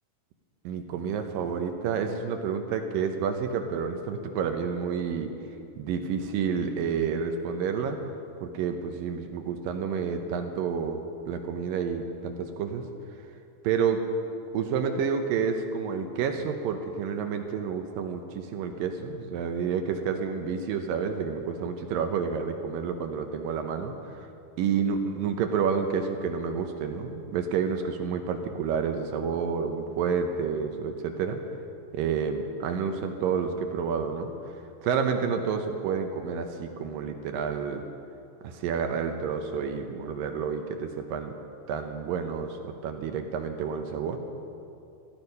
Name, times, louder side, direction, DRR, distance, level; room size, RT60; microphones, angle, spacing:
voice 1, 0.6-5.3 5.8-8.0 8.4-11.0 11.3-12.8 13.6-14.0 14.5-24.3 24.6-31.4 31.9-34.3 34.8-37.8 38.4-41.3 41.7-44.2, right 6 dB, 75° right, 6 dB, 2.5 m, -29 dB
16.5 x 13.0 x 5.5 m, 2.6 s
omnidirectional pair, 4.3 m